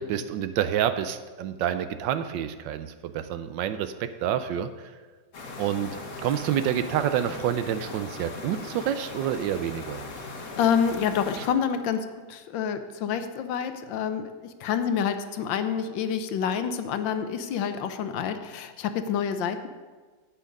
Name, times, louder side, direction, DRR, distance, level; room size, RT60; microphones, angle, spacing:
voice 1, 0.0-4.7 5.6-5.9 6.2-10.1, right 10 dB, 75° right, 11 dB, 1.2 m, -28 dB
sound 1, 5.3-11.5, left 3 dB, 45° left, 1.4 m, -39 dB
voice 2, 10.6-19.7, left 7 dB, 75° left, 9 dB, 1.4 m, -28 dB
8.5 x 8.5 x 5.2 m, 1.4 s
omnidirectional pair, 2.1 m